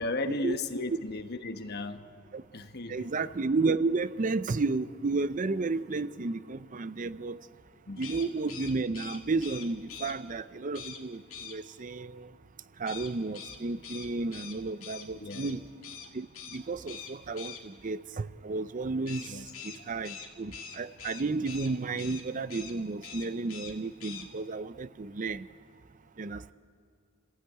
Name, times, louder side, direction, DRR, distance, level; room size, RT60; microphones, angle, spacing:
voice 1, 0.0-2.1 2.5-3.1 7.9-8.0 15.1-15.6 19.3-19.5, left 2 dB, 50° left, 8 dB, 1.2 m, -35 dB
voice 2, 2.9-7.4 8.0-11.2 11.5-12.3 12.8-15.6 16.1-16.3 16.5-19.2 19.9-25.4 26.2-26.5, right 3 dB, 35° right, 14 dB, 0.5 m, -32 dB
sound 1, 8.0-10.1 10.7-11.0 11.3-11.6 12.9-15.5 15.8-16.1 16.3-16.6 16.9-17.6 19.1-21.7 22.0-22.2 22.5-22.7 23.0-23.7 24.0-24.2, left 7 dB, 70° left, 2.3 m, -44 dB
29.5 x 16.0 x 9.2 m, 2.3 s
head